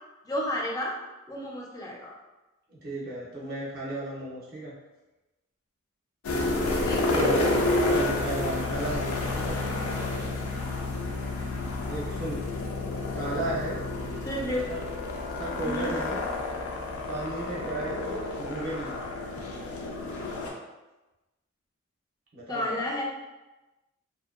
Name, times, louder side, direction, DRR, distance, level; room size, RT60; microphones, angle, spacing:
voice 1, 0.3-0.9 1.3-2.1 6.8-7.7 14.2-14.8 15.6-15.9 22.5-23.0, left 1 dB, 15° left, -3 dB, 0.3 m, -32 dB
voice 2, 2.7-4.7 7.1-7.4 7.9-9.6 11.8-12.4 13.1-13.8 14.7-14.8 15.4-16.2 17.1-19.0 22.3-22.8, right 2 dB, 45° right, -6 dB, 0.6 m, -34 dB
sound 1, 6.2-20.5, left 2 dB, 85° left, 0.4 m, -30 dB
2.6 x 2.2 x 2.3 m, 1.1 s
head